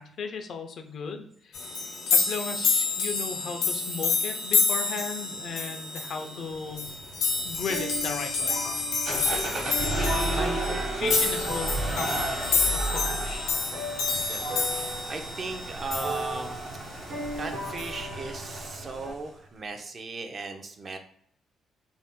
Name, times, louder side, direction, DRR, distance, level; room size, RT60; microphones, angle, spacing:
voice 1, 0.0-6.9 7.4-8.7 9.8-10.6 10.9-12.3 12.7-13.5, left 5 dB, 60° left, 6 dB, 0.4 m, -36 dB
sound 1, 1.5-16.6 17.8-18.0, left 4 dB, 85° left, 0.7 m, -29 dB
sound 2, 6.5-19.1, right 1 dB, 80° right, 1.0 m, -36 dB
sound 3, 9.1-19.3, right 2 dB, 55° right, 1.0 m, -34 dB
voice 2, 9.3-10.1 10.4-10.5 11.1-11.3 14.2-16.6 17.3-21.0, right 3 dB, 40° right, 6 dB, 0.4 m, -37 dB
2.5 x 2.0 x 3.5 m, 0.66 s
cardioid pair, 90°, 0 cm